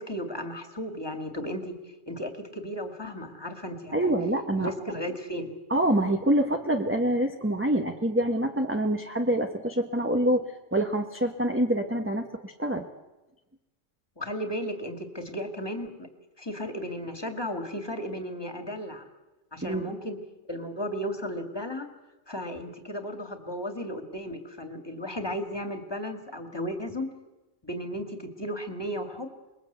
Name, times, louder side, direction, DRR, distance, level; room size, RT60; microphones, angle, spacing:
voice 1, 0.0-1.8 2.1-4.1 4.6-5.5 14.2-16.1 16.4-19.1 19.5-20.2 20.5-21.9 22.3-27.1 27.6-29.3, equal, 15° left, 5 dB, 2.5 m, -34 dB
voice 2, 3.9-4.7 5.7-12.9 19.6-19.9, right 1 dB, 10° right, 3 dB, 1.2 m, -26 dB
27.5 x 21.0 x 8.3 m, 1.1 s
omnidirectional pair, 1.4 m